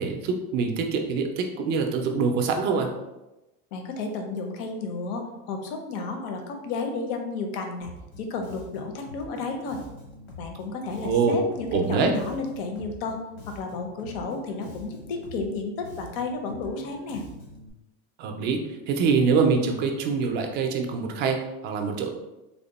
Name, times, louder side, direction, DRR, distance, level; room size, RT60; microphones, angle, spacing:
voice 1, 0.0-2.9 11.0-11.3 11.7-12.1 18.2-18.6 18.9-21.4 21.6-22.1, right 5 dB, 35° right, 4 dB, 0.4 m, -24 dB
voice 2, 3.7-7.9 8.2-9.8 10.4-13.2 13.5-17.2, left 3 dB, 65° left, 4 dB, 0.6 m, -32 dB
Bass guitar, 7.8-17.7, left 1 dB, 90° left, 1.0 m, -45 dB
3.5 x 2.1 x 4.0 m, 1.0 s
cardioid pair, 170°, 30 cm